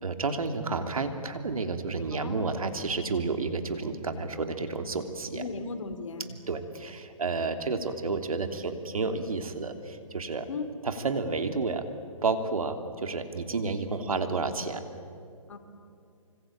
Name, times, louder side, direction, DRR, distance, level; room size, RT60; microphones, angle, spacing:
voice 1, 0.0-5.4 6.5-10.5 10.8-11.9 12.2-14.8, right 4 dB, 80° right, 7 dB, 3.0 m, -31 dB
voice 2, 2.1-2.5 5.3-6.3 10.5-10.7 14.0-14.4 15.5-15.6, left 4 dB, 60° left, 8 dB, 3.3 m, -37 dB
26.0 x 25.5 x 8.7 m, 2.5 s
hypercardioid pair, 160°, 18 cm